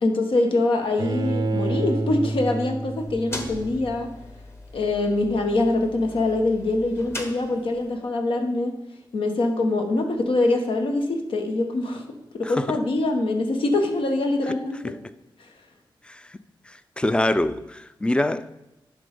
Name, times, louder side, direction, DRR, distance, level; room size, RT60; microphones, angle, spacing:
voice 1, 0.0-4.1 4.7-8.7 9.1-12.0 12.3-14.9 15.4-15.5, left 2 dB, 80° left, 4 dB, 1.1 m, -24 dB
Bowed string instrument, 1.0-4.0, right 3 dB, 55° right, 0.5 m, -28 dB
sound 1, 2.9-8.0, left 1 dB, 30° left, 1.1 m, -40 dB
voice 2, 12.4-12.8 16.0-16.4 16.7-18.5, left 1 dB, 10° left, 13 dB, 0.4 m, -25 dB
10.5 x 3.8 x 5.1 m, 0.94 s
cardioid pair, 75°, 9 cm